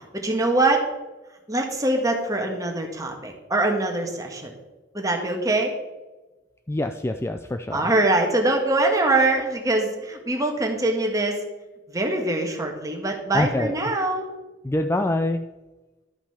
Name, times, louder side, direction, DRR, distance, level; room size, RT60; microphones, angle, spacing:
voice 1, 0.1-0.8 1.5-4.5 4.9-5.7 7.7-11.4 11.9-14.3, right 2 dB, 20° right, 2 dB, 1.8 m, -23 dB
voice 2, 6.7-7.9 13.3-13.8 14.6-15.4, left 1 dB, 15° left, 6 dB, 0.4 m, -25 dB
12.5 x 5.9 x 5.7 m, 1.1 s
head